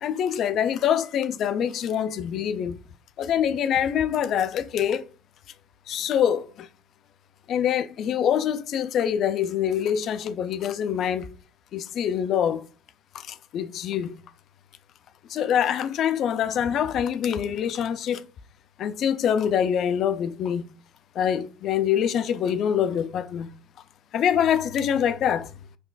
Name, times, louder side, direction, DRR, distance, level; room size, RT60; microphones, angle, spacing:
voice 1, 0.0-2.8 3.2-5.1 5.9-6.7 7.5-11.4 11.7-12.7 13.1-14.2 15.3-18.3 18.8-20.7 21.2-23.5 24.1-25.5, left 9 dB, 45° left, 0.3 m, -25 dB
5.8 x 2.4 x 2.2 m
cardioid pair, 135°, 0 cm